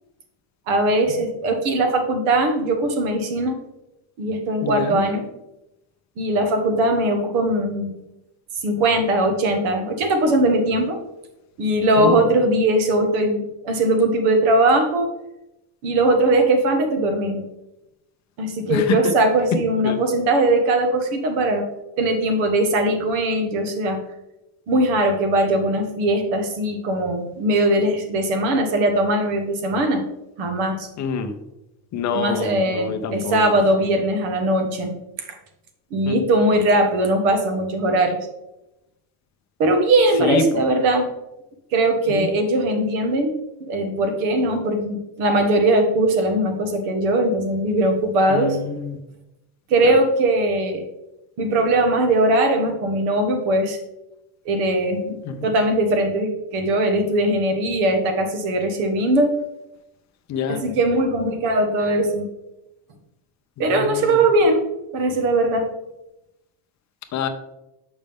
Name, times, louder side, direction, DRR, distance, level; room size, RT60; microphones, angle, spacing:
voice 1, 0.7-3.6 4.2-5.2 6.2-7.9 8.6-11.0 11.6-15.1 15.8-17.4 18.4-21.6 22.0-24.0 24.7-30.0 30.4-30.9 32.1-35.3 35.9-38.2 39.6-41.1 41.7-43.4 43.7-48.6 49.7-50.8 51.4-53.8 54.4-55.2 55.4-59.3 60.5-62.3 63.6-64.6 64.9-65.7, right 1 dB, 75° right, 5 dB, 1.4 m, -20 dB
voice 2, 4.6-5.0 12.0-12.2 18.7-18.8 19.8-20.0 31.0-31.3 31.9-33.4 36.1-36.2 40.2-40.4 42.1-42.3 48.3-48.8 55.3-55.5 60.3-60.6 63.9-64.0 67.1-67.3, left 5 dB, 35° left, 6 dB, 0.6 m, -26 dB
7.2 x 5.2 x 3.4 m, 0.93 s
cardioid pair, 165°, 49 cm